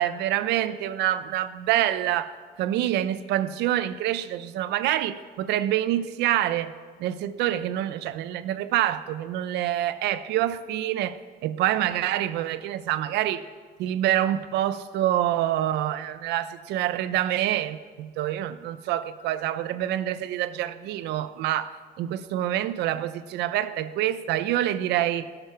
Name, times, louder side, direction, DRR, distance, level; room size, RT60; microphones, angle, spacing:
voice 1, 0.0-2.3 2.6-6.7 7.0-13.4 13.8-25.3, right 12 dB, 85° right, 0.8 m, -26 dB
17.0 x 12.0 x 5.8 m
cardioid pair, 110°, 17 cm